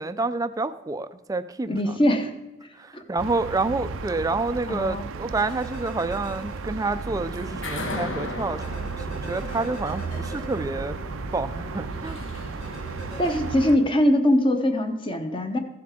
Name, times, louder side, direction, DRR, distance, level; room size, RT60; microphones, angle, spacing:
voice 1, 0.0-1.8 2.8-11.0 11.3-12.2, right 3 dB, 15° right, 12 dB, 0.3 m, -28 dB
voice 2, 1.7-2.3 2.9-3.0 4.7-5.1 13.2-15.6, left 1 dB, 25° left, 6 dB, 0.8 m, -22 dB
sound 1, 3.2-13.8, right 4 dB, 80° right, 0.5 m, -35 dB
sound 2, 5.4-7.0 7.4-7.5 8.6-11.4 12.6-13.4, right 2 dB, 85° left, 3.6 m, -43 dB
sound 3, 7.1-13.9, left 2 dB, 70° left, 1.2 m, -37 dB
14.5 x 7.6 x 3.7 m, 1.1 s
head